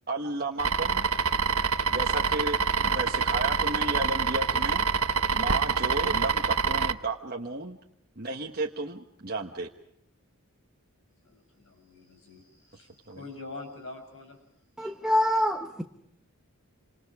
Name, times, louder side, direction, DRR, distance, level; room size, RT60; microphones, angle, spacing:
voice 1, 0.1-1.0 1.9-4.9 5.3-7.8 8.2-9.7 13.1-13.2, right 3 dB, 45° right, 0 dB, 1.3 m, -33 dB
sound 1, 0.6-6.9, right 5 dB, 80° right, 1.0 m, -26 dB
voice 2, 11.2-14.4, left 3 dB, 60° left, 5 dB, 6.4 m, -45 dB
voice 3, 14.8-15.8, equal, 5° right, 3 dB, 1.1 m, -25 dB
28.0 x 26.5 x 4.9 m, 0.75 s
head